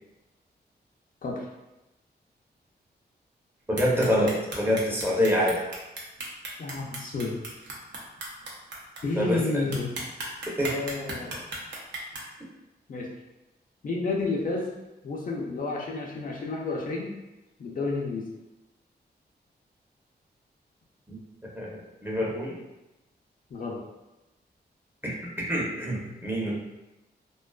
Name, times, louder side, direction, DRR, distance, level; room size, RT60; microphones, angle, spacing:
voice 1, 3.7-5.6 9.2-9.7 10.5-10.8 21.1-21.2 21.5-21.7 22.0-22.5 25.0-26.5, equal, 10° right, -4 dB, 0.6 m, -26 dB
sound 1, 3.7-9.0 9.4-9.5 9.7-12.2, right 3 dB, 80° right, 0.6 m, -35 dB
voice 2, 6.6-7.4 9.0-9.9 10.6-11.3 12.9-13.1 13.8-14.7 15.0-17.1 17.6-18.3 23.5-23.8, left 3 dB, 50° left, -2 dB, 0.4 m, -30 dB
2.4 x 2.2 x 2.2 m, 0.99 s
cardioid pair, 80°, 18 cm